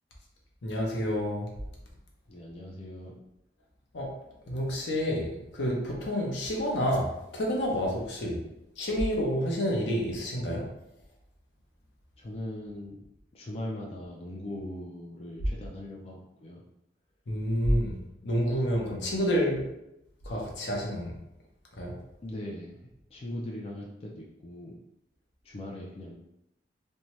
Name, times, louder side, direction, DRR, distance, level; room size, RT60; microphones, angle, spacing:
voice 1, 0.6-1.5 3.9-4.1 4.5-8.4 8.8-10.6 17.3-18.0 18.2-19.7 20.3-21.1 21.8-22.0, equal, 80° left, -1 dB, 0.7 m, -29 dB
voice 2, 2.3-3.1 12.2-13.0 13.3-16.6 22.2-24.8 25.4-26.1, left 1 dB, 35° left, -2 dB, 0.4 m, -40 dB
2.7 x 2.2 x 3.0 m, 0.85 s
head